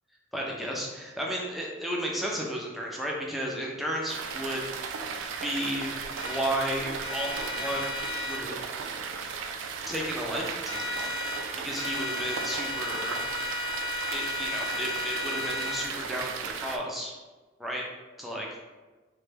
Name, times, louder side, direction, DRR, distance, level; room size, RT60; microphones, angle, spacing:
voice 1, 0.3-4.6 5.4-7.9 8.2-8.6 9.9-10.9 11.5-13.2 14.1-17.1 17.6-17.8 18.2-18.5, equal, ahead, -3 dB, 0.4 m, -33 dB
sound 1, 4.1-16.8, right 5 dB, 85° right, 0.3 m, -36 dB
sound 2, 6.2-6.5 7.0-8.4 10.6-11.4 11.7-15.9, left 2 dB, 80° left, 0.8 m, -34 dB
3.1 x 2.1 x 3.3 m, 1.3 s
head